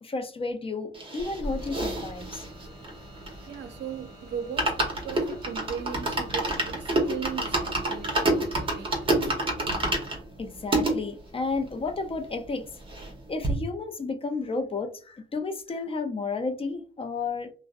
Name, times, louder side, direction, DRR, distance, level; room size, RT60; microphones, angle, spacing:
voice 1, 0.0-2.4 10.4-12.7 13.3-17.5, left 3 dB, 30° left, 0.4 m, -32 dB
sound 1, 0.9-3.7 4.0-4.1 4.4-10.9 11.5-11.6 11.8-11.9 12.2-13.2 13.4-13.5, right 2 dB, 25° right, 0.9 m, -28 dB
sound 2, 1.4-9.3, equal, 5° left, 1.1 m, -50 dB
voice 2, 3.5-9.8, right 7 dB, 60° right, 0.6 m, -38 dB
2.5 x 2.0 x 2.4 m
cardioid pair, 90°, 20 cm